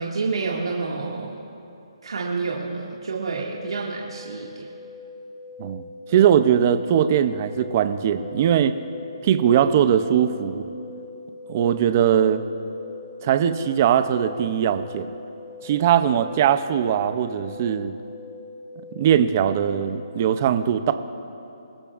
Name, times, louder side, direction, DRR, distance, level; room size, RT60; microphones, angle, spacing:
voice 1, 0.0-1.4 2.0-4.7, right 4 dB, 80° right, -3 dB, 2.0 m, -29 dB
sound 1, 3.4-20.2, left 4 dB, 20° left, 1.1 m, -42 dB
voice 2, 6.1-8.8 9.2-10.6 11.5-12.4 13.2-15.1 15.6-17.9 18.9-20.9, right 9 dB, 25° right, 11 dB, 0.5 m, -20 dB
25.0 x 14.0 x 2.5 m, 2.8 s
hypercardioid pair, 175°, 3 cm